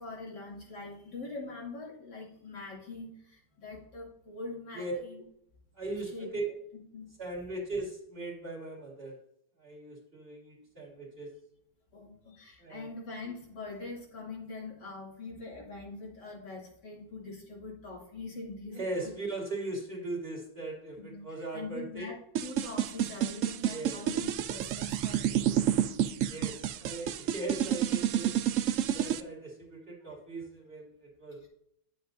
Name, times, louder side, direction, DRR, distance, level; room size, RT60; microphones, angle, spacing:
voice 1, 0.0-5.2 6.1-6.3 6.9-7.2 11.9-19.1 21.0-21.3 21.5-22.1 22.4-25.8 30.0-30.1, left 3 dB, 70° left, -4 dB, 3.2 m, -43 dB
voice 2, 5.7-6.4 7.2-9.2 9.6-11.3 12.6-12.9 18.7-22.1 23.7-24.0 26.3-28.4 28.9-31.5, right 2 dB, 30° right, -3 dB, 2.9 m, -39 dB
sound 1, 22.4-29.2, right 10 dB, 85° right, 0.7 m, -29 dB
11.0 x 7.8 x 2.6 m, 0.72 s
omnidirectional pair, 1.9 m